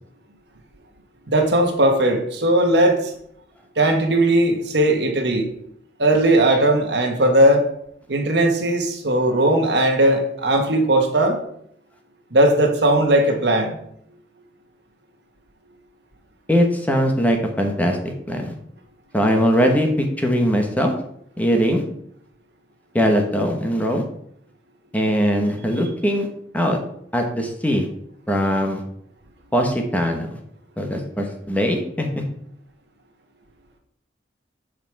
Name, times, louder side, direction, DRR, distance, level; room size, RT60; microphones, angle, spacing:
voice 1, 1.3-3.1 3.8-5.5 6.0-7.6 8.1-11.4 12.3-13.8, right 1 dB, 70° right, 3 dB, 1.4 m, -18 dB
voice 2, 16.5-18.0 18.3-18.5 19.1-20.9 21.4-21.8 22.9-24.0 24.9-26.3 26.5-26.8 27.1-27.8 28.3-28.8 29.5-30.4 30.8-32.1, equal, 10° left, 2 dB, 1.1 m, -20 dB
7.9 x 4.9 x 4.7 m, 0.69 s
head